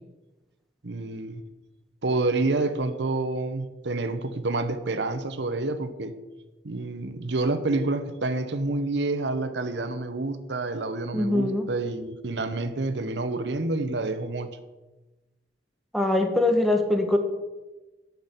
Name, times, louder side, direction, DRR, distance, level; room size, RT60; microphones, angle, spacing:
voice 1, 0.8-1.4 2.0-6.1 6.6-14.5, right 2 dB, 75° right, 10 dB, 0.9 m, -28 dB
voice 2, 11.1-11.6 15.9-17.2, left 1 dB, ahead, 4 dB, 1.2 m, -22 dB
10.0 x 5.9 x 8.3 m, 1.1 s
head